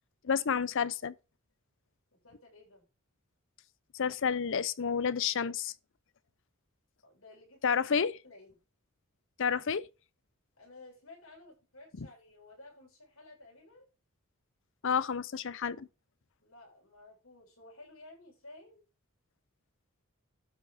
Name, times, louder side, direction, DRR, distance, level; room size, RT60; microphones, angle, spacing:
voice 1, 0.2-1.1 3.9-5.7 7.6-8.1 9.4-9.8 12.0-12.1 14.8-15.9, left 6 dB, 60° left, 0.6 m, -30 dB
voice 2, 2.1-2.9 7.0-8.6 10.6-13.9 16.4-18.8, left 2 dB, 80° left, 7.3 m, -54 dB
12.0 x 5.6 x 4.9 m
head